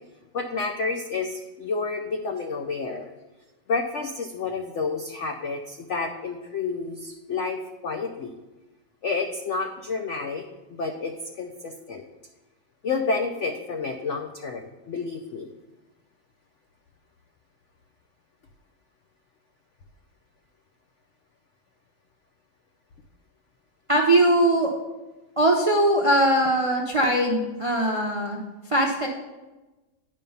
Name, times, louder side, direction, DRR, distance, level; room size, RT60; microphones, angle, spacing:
voice 1, 0.3-3.1 3.7-8.3 9.0-10.4 10.7-12.0 12.8-15.5, left 4 dB, 80° left, 5 dB, 0.6 m, -30 dB
voice 2, 23.9-24.7 25.4-29.1, right 1 dB, 45° right, 1 dB, 0.4 m, -21 dB
9.6 x 5.4 x 5.5 m, 1.1 s
omnidirectional pair, 2.0 m